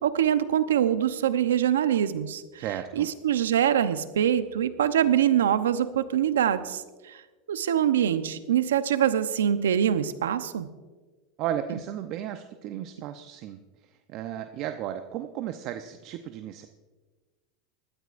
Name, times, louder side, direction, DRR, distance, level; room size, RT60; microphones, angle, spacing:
voice 1, 0.0-2.7 2.9-7.2 7.5-10.7, right 10 dB, 90° right, 12 dB, 0.8 m, -24 dB
voice 2, 2.6-3.1 11.4-13.6 14.1-16.7, right 11 dB, 55° right, 8 dB, 0.7 m, -34 dB
20.0 x 13.5 x 2.6 m, 1.3 s
hypercardioid pair, 100°, 0 cm